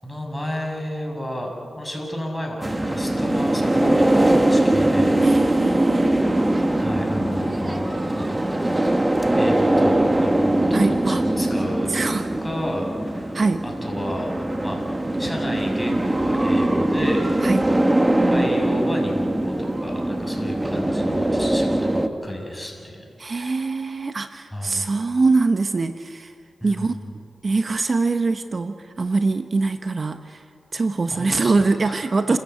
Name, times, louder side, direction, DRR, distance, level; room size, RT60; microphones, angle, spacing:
voice 1, 0.0-5.2 6.7-8.4 9.4-11.9 12.4-13.3 13.6-14.3 14.6-14.8 15.2-17.3 18.3-23.5 24.5-24.9 26.6-27.1 31.1-31.5 31.8-32.0, equal, 5° left, 0 dB, 7.2 m, -32 dB
sound 1, 2.6-22.1, right 1 dB, 20° right, 1.6 m, -21 dB
voice 2, 5.2-6.3 10.7-11.2 11.9-12.3 13.3-13.6 17.4-17.7 23.2-26.3 26.6-26.9 27.4-30.4 30.7-32.4, right 3 dB, 55° right, 9 dB, 0.9 m, -23 dB
29.5 x 14.5 x 8.3 m, 2.5 s
cardioid pair, 50°, 0 cm